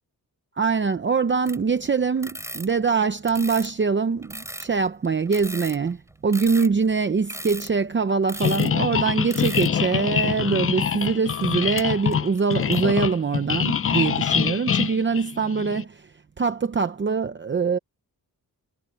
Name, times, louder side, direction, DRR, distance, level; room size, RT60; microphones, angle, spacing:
voice 1, 0.6-16.1 16.4-17.8, right 5 dB, 30° right, 0.7 m, -23 dB
sound 1, 1.5-1.8 2.2-3.8 4.2-8.8 9.3-9.8 10.1-10.3 11.3-11.8 12.1-12.9, right 1 dB, 10° right, 5.4 m, -37 dB
sound 2, 8.4-15.8, left 8 dB, 40° left, 0.5 m, -25 dB
wide cardioid pair, 175°, 36 cm